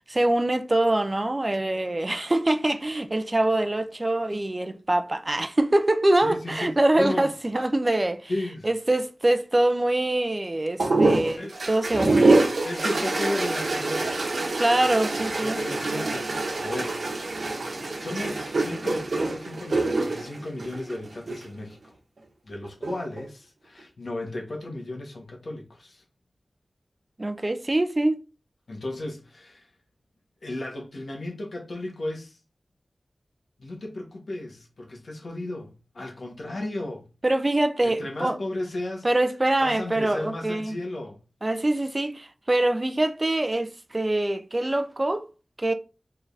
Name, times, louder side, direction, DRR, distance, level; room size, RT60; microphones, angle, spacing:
voice 1, 0.1-8.3 8.6-12.4 14.6-15.6 27.2-28.2 37.2-38.4 39.0-40.8 41.4-45.2 45.6-45.7, right 1 dB, 30° right, 0.5 m, -24 dB
voice 2, 6.2-7.3 8.3-8.7 11.1-11.6 12.6-14.1 15.4-17.2 18.0-21.9 22.4-26.0 28.7-29.7 30.4-32.4 33.6-37.1 37.8-39.1 39.6-41.2, left 1 dB, 75° left, 1.4 m, -34 dB
sound 1, 10.8-21.5 22.6-23.2, right 2 dB, 75° right, 1.0 m, -25 dB
5.0 x 3.7 x 2.7 m
wide cardioid pair, 65°, 0 cm